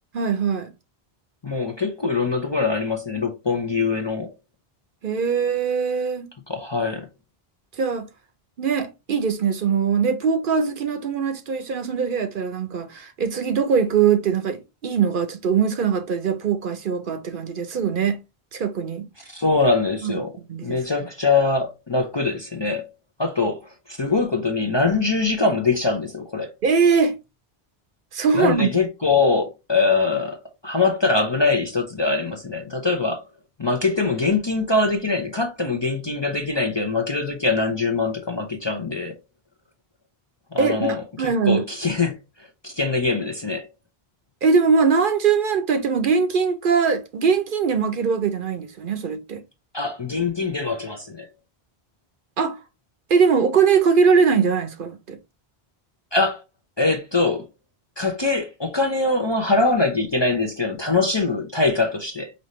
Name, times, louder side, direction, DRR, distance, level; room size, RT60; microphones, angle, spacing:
voice 1, 0.1-0.7 5.0-6.3 7.8-8.1 8.6-18.2 18.5-19.1 20.0-20.2 20.5-20.8 26.6-27.2 28.1-28.7 40.6-41.6 44.4-49.4 52.4-52.6 53.1-55.2, right 6 dB, 60° right, 0.8 m, -21 dB
voice 2, 1.4-4.3 6.5-7.1 19.3-20.3 20.6-22.9 23.2-26.5 28.3-33.2 33.6-39.1 40.5-43.7 49.7-51.3 56.1-56.4 56.8-57.5 58.0-62.3, left 3 dB, 30° left, 0.6 m, -23 dB
5.3 x 2.7 x 3.1 m
omnidirectional pair, 1.0 m